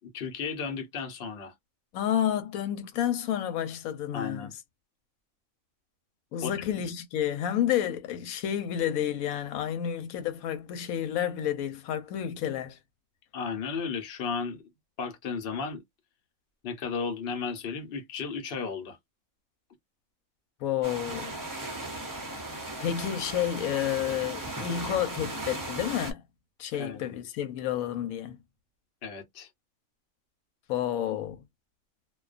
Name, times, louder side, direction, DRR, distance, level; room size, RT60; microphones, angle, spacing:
voice 1, 0.1-1.5 4.1-4.5 6.4-6.8 13.3-14.6 15.0-15.8 16.6-19.0 26.7-27.0 29.0-29.5, left 5 dB, 55° left, 0.9 m, -34 dB
voice 2, 1.9-4.5 6.3-12.8 20.6-21.4 22.8-26.2 26.6-28.4 30.7-31.4, left 10 dB, 90° left, 1.0 m, -30 dB
sound 1, 20.8-26.1, right 2 dB, 25° right, 0.4 m, -37 dB
2.3 x 2.2 x 2.4 m
omnidirectional pair, 1.4 m